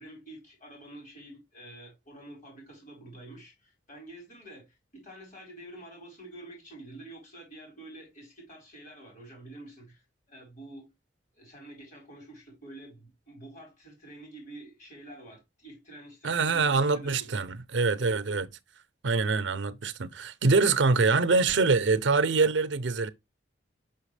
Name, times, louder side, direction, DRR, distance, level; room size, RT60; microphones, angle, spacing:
voice 1, 0.0-10.9 11.3-17.4, right 1 dB, 40° left, 4.4 m, -48 dB
voice 2, 16.2-18.5 19.0-23.1, right 4 dB, 80° right, 0.6 m, -24 dB
6.0 x 5.6 x 3.2 m
head